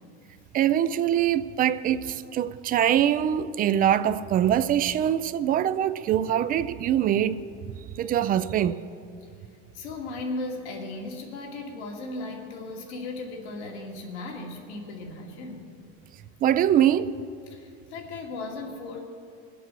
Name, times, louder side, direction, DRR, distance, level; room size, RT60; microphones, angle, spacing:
voice 1, 0.5-7.4 7.9-8.8 16.4-17.1, right 10 dB, 30° right, 0.3 m, -23 dB
voice 2, 9.7-15.7 17.5-19.0, left 2 dB, 90° left, 2.4 m, -36 dB
21.0 x 8.1 x 6.2 m
supercardioid pair, 130°, 32 cm